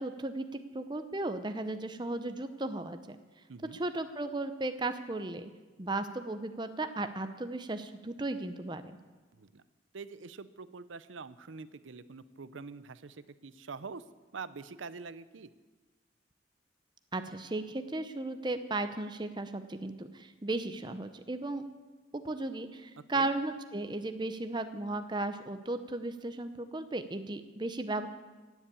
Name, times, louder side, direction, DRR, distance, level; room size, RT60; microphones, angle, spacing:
voice 1, 0.0-3.2 3.7-5.5 5.8-8.8 17.1-21.6 22.1-28.1, right 2 dB, 25° right, 9 dB, 0.7 m, -35 dB
voice 2, 9.3-9.6 9.9-14.0 14.3-15.5 23.1-23.3, right 4 dB, 85° right, 15 dB, 0.7 m, -45 dB
16.5 x 8.2 x 8.6 m, 1.3 s
head